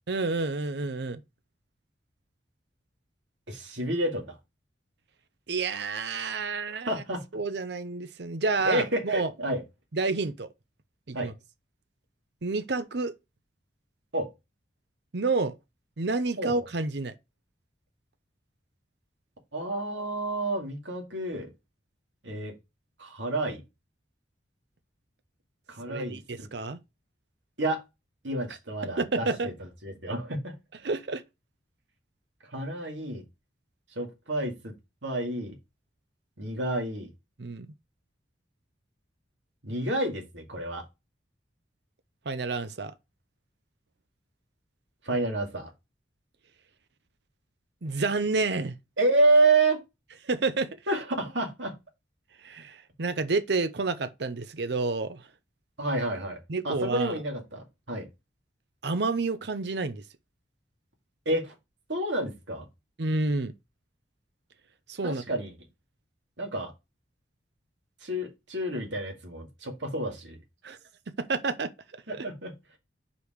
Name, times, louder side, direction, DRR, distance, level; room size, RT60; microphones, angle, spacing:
voice 1, 0.1-1.2 5.5-7.0 7.3-9.3 9.9-10.5 11.1-11.3 12.4-13.1 15.1-15.5 16.0-17.1 25.8-26.8 29.0-29.5 30.8-31.2 37.4-37.7 42.3-42.9 47.8-48.7 50.2-50.7 52.4-55.2 56.5-57.2 58.8-60.0 63.0-63.5 64.9-65.2 70.6-70.8 71.2-71.7 72.1-72.2, right 3 dB, 60° right, 0.7 m, -29 dB
voice 2, 3.5-4.4 6.7-7.2 8.7-9.6 11.1-11.3 14.1-14.3 16.4-16.5 19.5-21.5 22.2-22.5 23.0-23.6 25.7-26.5 27.6-27.8 28.2-29.5 29.8-30.5 32.5-33.2 34.0-34.7 35.0-35.5 36.4-37.1 39.6-40.8 45.0-45.7 49.0-49.8 50.9-51.7 55.8-56.4 56.6-58.1 61.3-61.5 61.9-62.7 65.0-65.5 66.4-66.7 68.0-70.4 72.1-72.5, right 2 dB, 80° right, 2.3 m, -29 dB
5.1 x 4.8 x 5.0 m
head